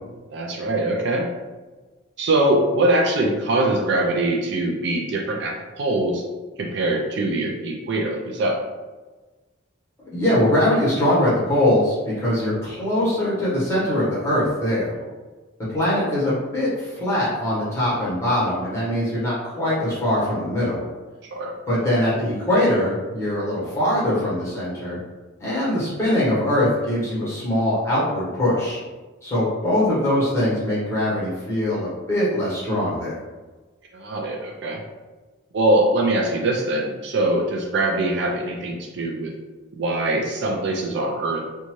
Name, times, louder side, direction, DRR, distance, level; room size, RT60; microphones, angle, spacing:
voice 1, 0.3-1.3 2.2-6.2 6.6-8.6 21.3-21.5 33.9-34.8 35.5-39.3 39.7-41.6, right 2 dB, 55° right, 0 dB, 0.3 m, -22 dB
voice 2, 10.1-14.8 15.7-20.8 21.7-25.0 25.4-28.8 29.2-33.2, left 1 dB, 15° left, -9 dB, 1.1 m, -22 dB
2.6 x 2.2 x 3.0 m, 1.3 s
head